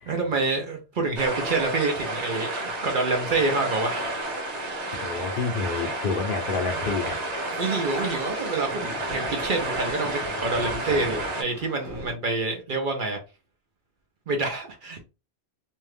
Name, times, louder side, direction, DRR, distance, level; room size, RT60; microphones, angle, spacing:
voice 1, 0.1-4.1 7.5-13.2 14.3-15.0, right 3 dB, 55° right, 0.7 m, -27 dB
sound 1, 1.2-11.4, right 1 dB, 90° right, 1.2 m, -31 dB
sound 2, 3.9-5.2 7.1-12.1, right 1 dB, 20° right, 0.8 m, -41 dB
voice 2, 5.0-7.2, left 4 dB, 55° left, 0.7 m, -29 dB
2.6 x 2.3 x 3.2 m
omnidirectional pair, 1.2 m